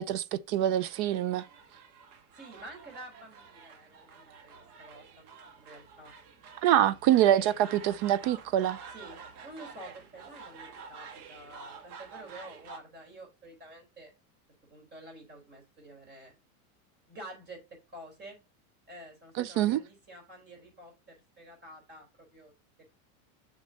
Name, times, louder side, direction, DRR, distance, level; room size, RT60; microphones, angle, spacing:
voice 1, 0.0-1.4 6.6-8.8 19.4-19.8, right 11 dB, 50° right, 0.6 m, -25 dB
sound 1, 0.6-12.8, right 5 dB, 90° right, 1.8 m, -49 dB
voice 2, 2.3-5.2 5.6-6.1 8.9-14.1 14.7-16.3 17.1-18.4 18.9-22.5, right 1 dB, 25° right, 4.2 m, -49 dB
6.6 x 6.4 x 4.0 m
supercardioid pair, 140°, 42 cm